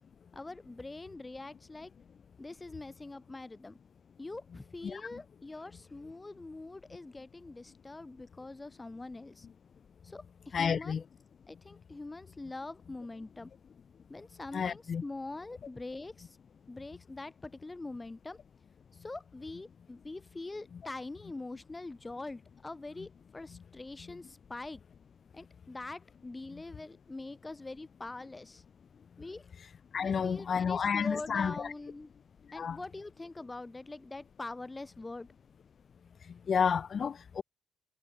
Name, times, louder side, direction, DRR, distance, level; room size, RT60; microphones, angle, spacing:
voice 1, 0.3-1.9 2.4-3.8 4.2-9.5 10.0-11.0 11.5-13.5 14.1-16.4 16.7-18.4 19.0-24.8 25.3-28.6 29.2-29.5 29.9-32.1 32.5-35.3, left 2 dB, 20° left, 3.9 m, -44 dB
voice 2, 10.5-11.0 14.5-15.0 24.0-24.1 29.9-31.7 32.5-32.8 36.2-37.4, left 6 dB, 50° left, 0.8 m, -31 dB
cardioid pair, 90°, 0 cm